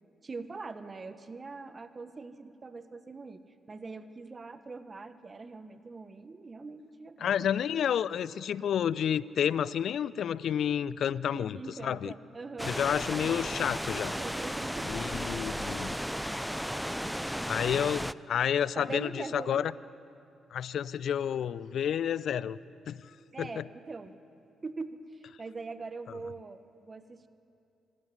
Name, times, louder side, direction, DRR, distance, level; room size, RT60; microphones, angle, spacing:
voice 1, 0.2-3.4 3.7-7.5 11.3-12.8 14.1-14.9 17.0-17.7 18.7-19.7 23.3-24.1 24.6-27.3, right 3 dB, 40° right, 11 dB, 1.3 m, -42 dB
voice 2, 7.2-12.1 12.6-14.1 14.9-16.0 17.5-19.7 20.5-22.6 22.9-23.0 23.4-23.6, left 9 dB, 65° left, 20 dB, 0.5 m, -30 dB
sound 1, 12.6-18.1, equal, ahead, 0.5 m, -34 dB
25.5 x 13.0 x 9.8 m, 2.7 s
hypercardioid pair, 45°, 0 cm